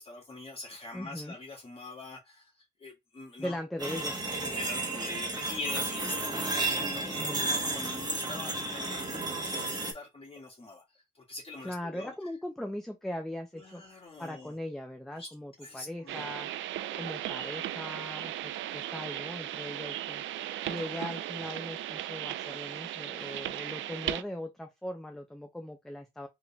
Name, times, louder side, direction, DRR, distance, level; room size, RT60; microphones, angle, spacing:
voice 1, 0.0-3.6 4.4-12.1 13.5-14.5 15.2-16.3 20.9-21.5 23.1-23.4, left 2 dB, 30° left, 1.9 m, -44 dB
voice 2, 0.9-1.4 3.4-4.2 7.2-7.5 8.3-8.5 11.6-16.5 17.0-20.2 20.6-26.3, left 1 dB, ahead, 0.6 m, -40 dB
sound 1, 3.8-9.9, right 2 dB, 20° right, 1.1 m, -32 dB
sound 2, 16.1-24.2, right 12 dB, 75° right, 0.4 m, -37 dB
3.7 x 3.7 x 2.3 m
cardioid pair, 90°, 20 cm